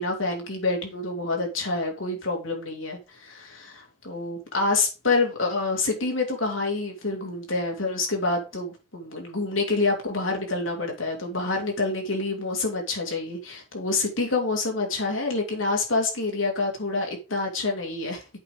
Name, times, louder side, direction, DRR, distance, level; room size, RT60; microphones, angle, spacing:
voice 1, 0.0-18.2, left 3 dB, 80° left, 2.8 m, -27 dB
8.2 x 5.3 x 5.1 m
head